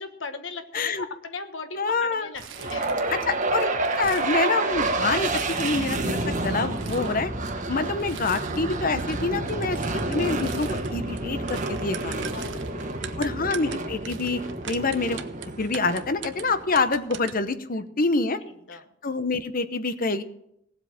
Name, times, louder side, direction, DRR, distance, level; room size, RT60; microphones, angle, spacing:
voice 1, 0.0-3.1 12.3-13.1 18.4-18.9, left 4 dB, 80° left, 9 dB, 1.3 m, -39 dB
voice 2, 0.7-1.0 1.8-2.3 3.3-3.7 4.0-5.3 5.6-7.3 7.7-12.4 13.2-15.2 15.6-18.4 19.0-20.2, left 3 dB, 50° left, 11 dB, 1.0 m, -26 dB
Crumpling crinkling, 2.3-3.4 3.6-4.9 5.3-6.1 6.6-7.2 8.0-8.8 9.0-13.1 13.7-13.8 14.0-15.1 15.4-15.5 16.5-16.7, right 7 dB, 90° right, 1.5 m, -45 dB
sound 1, 2.6-16.7, right 2 dB, 45° right, 1.5 m, -29 dB
sound 2, 8.5-17.5, right 7 dB, 70° right, 0.9 m, -42 dB
18.0 x 8.0 x 7.2 m, 0.76 s
head